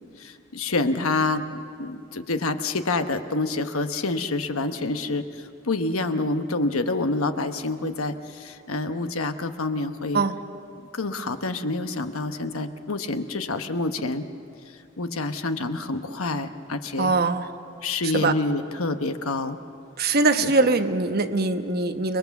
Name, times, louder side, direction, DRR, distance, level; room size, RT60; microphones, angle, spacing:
voice 1, 0.2-5.2 5.6-10.2 10.9-14.2 15.0-17.1 17.8-19.6 20.4-20.5, left 2 dB, 80° left, 8 dB, 1.1 m, -27 dB
voice 2, 17.0-17.5 18.0-18.3 20.0-22.2, right 3 dB, 45° right, 7 dB, 1.1 m, -22 dB
29.5 x 21.0 x 7.1 m, 2.4 s
head